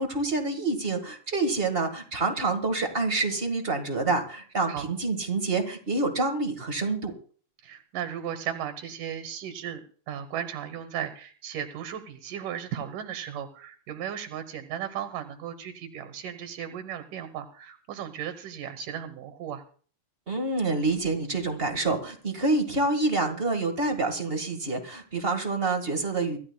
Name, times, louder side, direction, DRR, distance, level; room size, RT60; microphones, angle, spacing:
voice 1, 0.0-7.1 20.3-26.4, right 3 dB, 30° right, 4 dB, 1.0 m, -27 dB
voice 2, 7.6-19.6, right 9 dB, 80° right, 8 dB, 2.7 m, -36 dB
25.0 x 13.0 x 2.3 m, 0.43 s
omnidirectional pair, 3.7 m